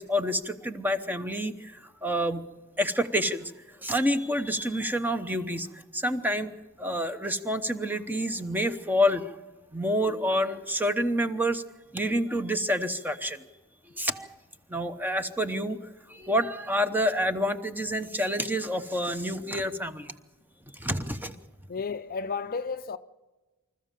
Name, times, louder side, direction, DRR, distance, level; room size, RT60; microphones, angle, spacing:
voice 1, 0.0-1.8 2.0-2.5 2.8-3.5 3.8-6.5 6.8-9.4 9.7-11.6 11.9-13.4 14.0-14.3 14.7-15.8 16.1-20.1 20.8-21.3, equal, 10° right, 0.9 m, -28 dB
voice 2, 21.7-23.0, left 5 dB, 40° left, 0.5 m, -32 dB
26.0 x 14.0 x 7.5 m
head